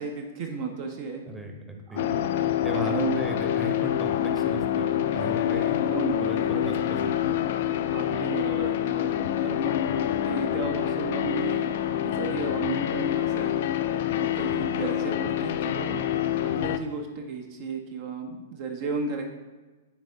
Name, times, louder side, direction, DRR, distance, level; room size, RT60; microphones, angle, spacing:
voice 1, 0.0-1.2 1.9-3.2 5.9-6.3 7.9-9.8 10.2-11.6 12.0-13.6 14.1-16.0 16.4-19.2, right 4 dB, 45° right, 3 dB, 0.7 m, -34 dB
voice 2, 1.3-2.0 2.6-5.8 6.2-7.1 8.1-8.2, right 1 dB, 10° right, 2 dB, 0.9 m, -36 dB
sound 1, 2.0-16.8, left 10 dB, 55° left, 0.3 m, -26 dB
9.9 x 3.6 x 2.7 m, 1.3 s
figure-of-eight pair, 105°, 0 cm